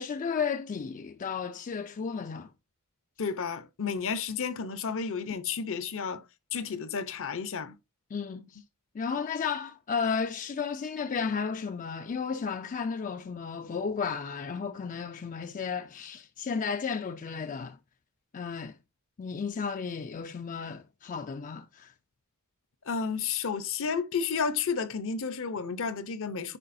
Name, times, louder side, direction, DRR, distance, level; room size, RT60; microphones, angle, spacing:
voice 1, 0.0-2.5 8.1-8.6 8.9-17.8 18.3-18.7 19.2-21.9, left 5 dB, 35° left, 0.3 m, -33 dB
voice 2, 3.2-6.2 6.5-7.8 22.9-26.6, left 5 dB, 65° left, 0.7 m, -32 dB
9.8 x 4.5 x 2.6 m
head